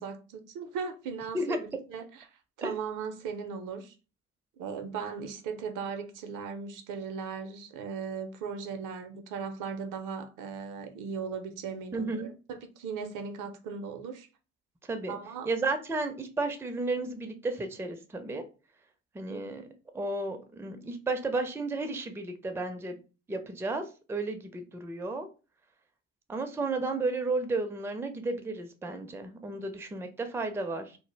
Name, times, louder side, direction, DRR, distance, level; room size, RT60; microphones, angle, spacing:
voice 1, 0.0-2.2 2.6-3.9 4.6-14.3 15.1-15.5 19.3-19.4, right 6 dB, 60° right, 0.6 m, -38 dB
voice 2, 11.9-12.3 14.8-15.2 15.5-18.4 19.1-19.6 19.9-23.0 23.3-25.3 26.3-31.0, right 2 dB, 5° right, 0.4 m, -33 dB
2.1 x 2.0 x 3.2 m
hypercardioid pair, 50°, 35 cm